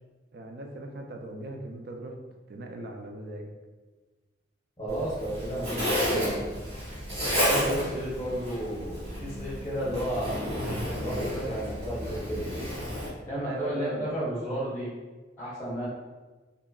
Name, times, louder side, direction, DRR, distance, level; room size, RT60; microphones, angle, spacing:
voice 1, 0.3-2.2 2.5-3.5 7.5-7.9 13.4-14.1, right 1 dB, 55° right, 3 dB, 0.3 m, -38 dB
voice 2, 4.8-6.5 7.3-10.6 10.9-12.5 13.3-14.9 15.4-15.9, right 1 dB, 15° left, -8 dB, 0.6 m, -32 dB
Zipper (clothing), 4.9-13.1, equal, 35° right, 0.9 m, -31 dB
2.8 x 2.4 x 2.3 m, 1.3 s
head